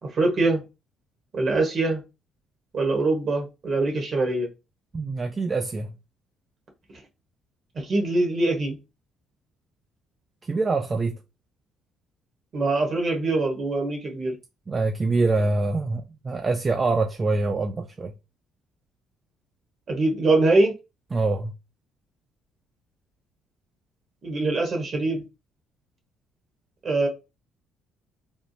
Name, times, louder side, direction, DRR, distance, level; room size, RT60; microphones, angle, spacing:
voice 1, 0.0-0.6 1.3-2.0 2.7-4.5 7.7-8.8 12.5-14.3 19.9-20.7 24.2-25.2 26.8-27.1, right 2 dB, 50° right, 1.2 m, -23 dB
voice 2, 4.9-5.9 10.4-11.2 14.7-18.1 21.1-21.5, right 3 dB, 35° right, 0.4 m, -25 dB
3.5 x 2.0 x 2.7 m
supercardioid pair, 65°, 0 cm